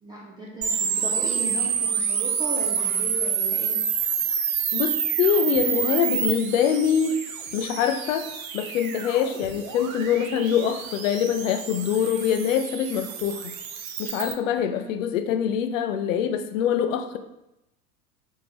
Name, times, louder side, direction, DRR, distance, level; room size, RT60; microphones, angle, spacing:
voice 1, 0.0-3.8 14.5-14.9, right 2 dB, 10° right, -5 dB, 0.3 m, -36 dB
sound 1, 0.6-14.3, right 7 dB, 65° right, 0.7 m, -28 dB
voice 2, 4.7-7.2 7.5-8.3 8.5-13.5 14.0-17.2, left 8 dB, 60° left, 8 dB, 0.5 m, -24 dB
3.6 x 3.6 x 3.0 m, 0.89 s
figure-of-eight pair, 80°, 45 cm